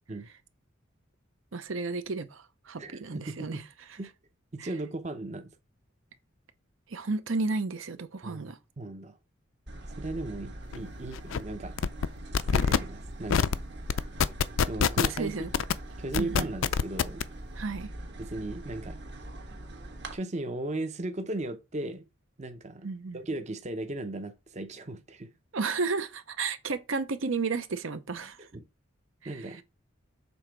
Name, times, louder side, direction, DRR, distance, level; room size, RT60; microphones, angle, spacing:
voice 1, 1.5-3.6 4.6-4.7 6.9-8.6 15.1-15.5 16.2-16.5 17.6-17.9 22.8-23.2 25.5-28.4, right 4 dB, 70° right, 0.8 m, -32 dB
voice 2, 2.8-3.7 4.0-4.1 4.5-5.5 8.2-9.2 9.9-11.7 12.5-13.5 14.7-15.3 16.0-17.2 18.2-19.0 20.1-22.0 22.4-22.9 23.1-25.3 28.4-28.6 29.2-29.6, right 2 dB, 35° right, 0.6 m, -36 dB
sound 1, 9.7-20.1, right 1 dB, 55° right, 1.5 m, -43 dB
sound 2, 10.7-10.8 11.1-11.4 11.8-12.1 12.3-12.8 13.3-13.6 13.9-15.2 15.5-15.7 16.1-17.2, left 6 dB, 70° left, 0.4 m, -24 dB
7.1 x 3.8 x 4.6 m
head